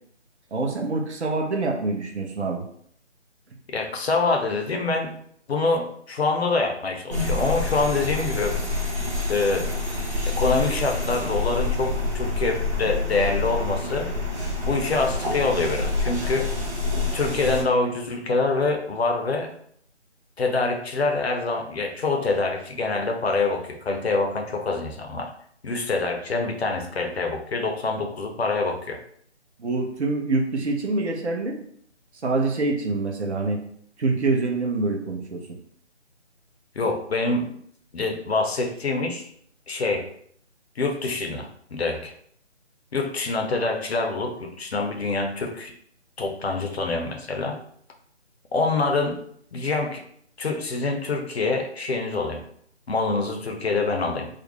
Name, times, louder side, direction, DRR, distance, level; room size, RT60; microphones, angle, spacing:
voice 1, 0.5-2.7 29.6-31.6 32.2-33.6 34.0-35.4, right 3 dB, 70° right, 1 dB, 0.7 m, -25 dB
voice 2, 3.7-5.2 5.5-8.6 9.3-9.7 10.3-14.1 14.6-16.5 17.1-19.5 20.4-25.3 25.6-29.0 36.8-37.5 37.9-39.2 39.7-40.1 40.8-42.1 42.9-45.7 46.2-47.6 48.5-49.2 49.5-50.0 50.4-52.4 52.9-54.3, left 3 dB, 60° left, 3 dB, 0.5 m, -25 dB
sound 1, 7.1-17.6, left 3 dB, 25° right, 0.6 m, -27 dB
2.5 x 2.0 x 2.9 m, 0.64 s
figure-of-eight pair, 155°, 35 cm